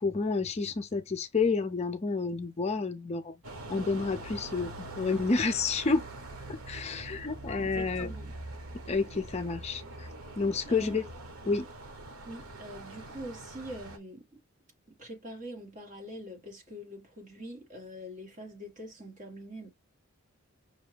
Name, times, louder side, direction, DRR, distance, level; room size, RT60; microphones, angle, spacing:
voice 1, 0.0-3.4 3.7-6.0 6.5-8.1 8.9-10.1 10.4-11.0 11.5-11.7, left 4 dB, 30° left, 0.4 m, -30 dB
sound 1, 3.4-14.0, right 2 dB, 85° right, 1.1 m, -44 dB
voice 2, 7.6-8.3 10.6-11.1 12.2-14.4 14.9-19.7, equal, 35° right, 1.7 m, -44 dB
5.5 x 2.6 x 3.3 m
head